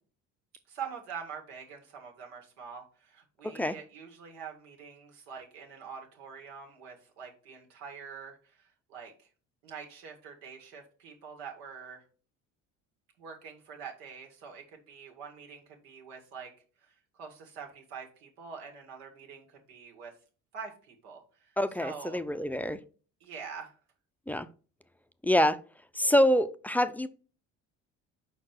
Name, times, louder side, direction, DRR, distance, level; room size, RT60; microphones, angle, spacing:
voice 1, 0.7-9.3 9.6-12.0 13.2-16.5 16.8-20.1 20.5-22.2 23.2-23.8, right 6 dB, 85° right, 2.0 m, -45 dB
voice 2, 3.4-3.7 21.6-22.8 24.3-24.5 25.2-25.6 25.9-27.1, equal, 5° left, 0.5 m, -26 dB
5.5 x 4.5 x 5.9 m
supercardioid pair, 75°, 33 cm